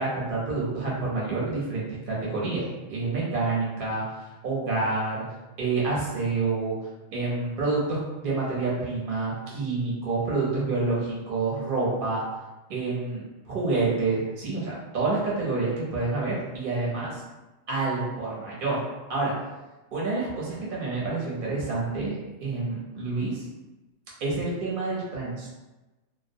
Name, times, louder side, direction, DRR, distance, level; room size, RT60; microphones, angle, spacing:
voice 1, 0.0-4.0 4.4-5.2 5.6-6.8 7.1-12.2 12.7-17.2 17.7-18.8 19.1-19.3 19.9-23.4 24.2-25.5, right 3 dB, 50° right, -5 dB, 0.9 m, -28 dB
2.2 x 2.1 x 2.6 m, 1.1 s
omnidirectional pair, 1.3 m